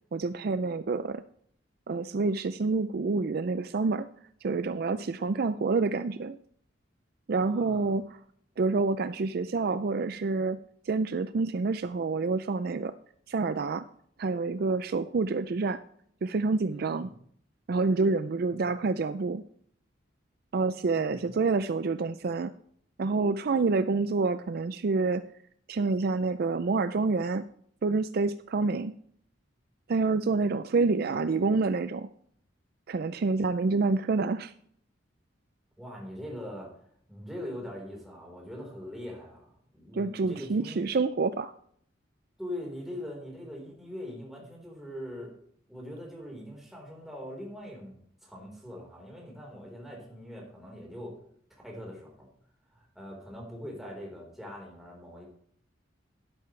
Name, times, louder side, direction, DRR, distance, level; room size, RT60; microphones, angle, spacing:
voice 1, 0.1-1.2 1.9-4.1 4.4-6.4 7.3-8.2 8.6-12.9 13.3-13.9 14.2-15.8 16.2-17.1 17.7-19.4 20.5-22.5 23.0-25.3 25.7-27.5 27.8-29.0 29.9-32.1 32.9-34.5 39.9-41.5, right 3 dB, 55° right, 12 dB, 0.4 m, -28 dB
voice 2, 7.4-7.9 16.7-17.1 17.8-18.4 20.7-21.2 35.8-36.7 37.1-40.9 42.4-45.3 45.7-47.9 48.2-51.2 51.6-52.3 52.7-55.3, left 1 dB, ahead, -2 dB, 4.1 m, -42 dB
12.0 x 11.5 x 3.3 m, 0.64 s
head